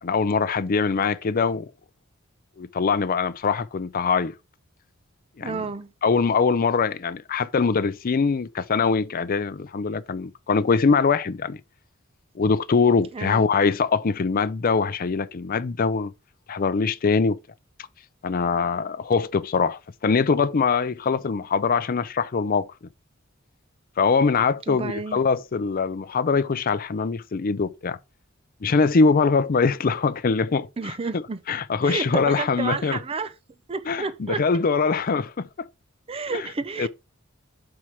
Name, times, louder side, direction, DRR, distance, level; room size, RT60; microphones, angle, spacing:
voice 1, 0.0-1.7 2.6-4.3 5.4-5.6 6.0-11.6 12.4-16.1 16.5-17.4 18.2-22.7 24.0-28.0 28.6-30.7 31.1-31.2 31.5-33.0 33.9-35.5 36.3-36.4 36.8-36.9, left 5 dB, 45° left, 0.5 m, -23 dB
voice 2, 5.4-5.9 13.1-13.5 24.7-25.2 30.8-31.4 31.8-33.3 33.7-34.4 36.1-36.9, right 4 dB, 30° right, 0.5 m, -30 dB
4.9 x 4.4 x 5.8 m
head